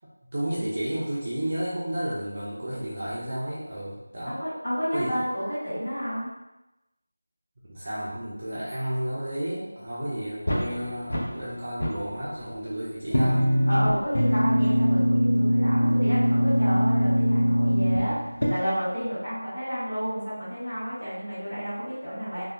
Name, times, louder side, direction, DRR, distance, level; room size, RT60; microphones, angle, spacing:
voice 1, 0.3-4.4 4.9-5.2 7.6-13.5, right 1 dB, 25° right, -8 dB, 0.4 m, -32 dB
voice 2, 4.3-6.3 13.7-22.4, equal, 20° left, -12 dB, 1.1 m, -31 dB
sound 1, 10.5-11.5 11.8-12.7 13.1-18.5, equal, 50° left, 0.6 m, -22 dB
2.7 x 2.1 x 2.3 m, 0.96 s
figure-of-eight pair, 180°, 0 cm